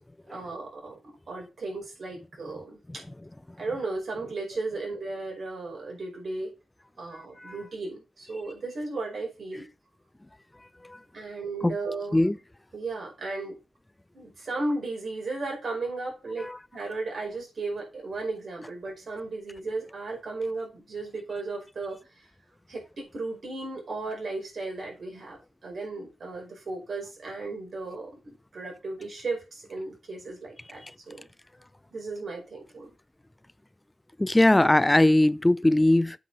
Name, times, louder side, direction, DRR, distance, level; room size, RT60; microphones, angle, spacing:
voice 1, 0.3-3.0 3.6-6.5 7.0-9.7 11.1-12.2 12.7-13.6 14.1-22.0 22.7-25.4 25.6-31.3 31.9-32.9, right 3 dB, 60° right, 5.2 m, -35 dB
voice 2, 7.1-7.6 10.8-11.0 11.6-11.8 12.1-12.4 16.4-16.6 30.8-30.9 34.2-36.2, left 1 dB, 15° left, 0.5 m, -21 dB
8.2 x 5.1 x 4.9 m
cardioid pair, 55°, 0 cm